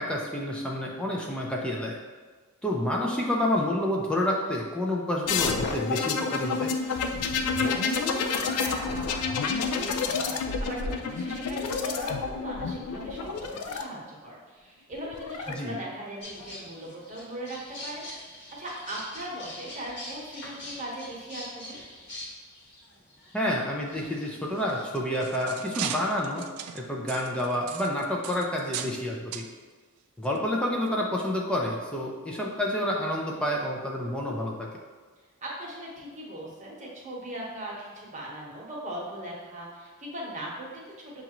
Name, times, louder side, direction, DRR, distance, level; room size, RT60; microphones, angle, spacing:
voice 1, 0.0-2.0 2.6-6.7 15.5-15.8 23.3-26.5 26.7-29.5 30.2-34.7, left 1 dB, 5° left, -2 dB, 0.4 m, -29 dB
sound 1, 5.3-13.8 14.9-15.5, left 5 dB, 90° left, 0.4 m, -29 dB
voice 2, 7.1-18.0 18.6-21.8 35.4-41.2, right 1 dB, 35° right, -4 dB, 1.0 m, -39 dB
sound 2, 16.2-24.9, left 1 dB, 55° left, 1.1 m, -44 dB
sound 3, 24.8-29.0 29.3-29.5 30.2-30.4 30.9-31.0, right 8 dB, 85° right, 0.3 m, -37 dB
6.6 x 2.4 x 2.9 m, 1.4 s
head